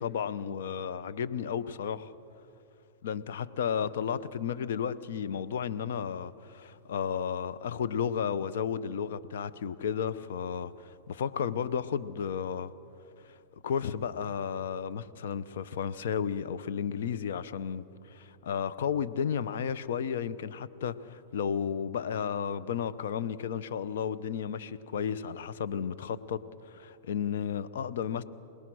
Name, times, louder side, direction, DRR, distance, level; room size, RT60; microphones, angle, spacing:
voice 1, 0.0-2.1 3.0-12.7 13.2-13.4 13.6-28.2, left 7 dB, 75° left, 14 dB, 0.9 m, -33 dB
26.0 x 18.5 x 6.3 m, 2.5 s
hypercardioid pair, 120°, 0 cm